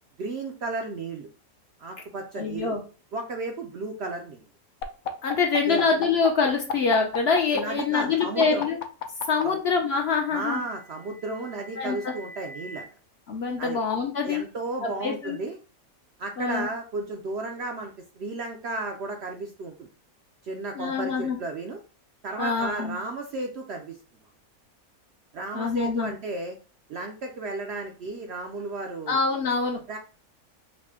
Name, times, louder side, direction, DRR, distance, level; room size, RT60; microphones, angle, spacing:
voice 1, 0.2-1.3 1.8-2.8 3.1-4.4 5.7-5.9 7.5-8.6 9.4-9.6 10.3-12.8 13.6-13.8 14.2-15.6 16.2-19.9 20.4-21.8 22.2-24.0 25.3-26.6 26.9-29.2 29.9-30.0, right 3 dB, 65° right, 3 dB, 0.7 m, -33 dB
voice 2, 2.3-2.8 5.2-8.8 9.3-10.6 11.8-12.1 13.3-14.4 14.8-15.4 16.4-16.7 20.8-21.4 22.4-23.0 25.5-26.1 29.1-29.8, left 5 dB, 55° left, 2 dB, 0.8 m, -25 dB
sound 1, 4.8-9.4 10.6-12.8, left 6 dB, 75° left, 1.0 m, -35 dB
4.8 x 2.1 x 3.5 m, 0.36 s
omnidirectional pair, 1.5 m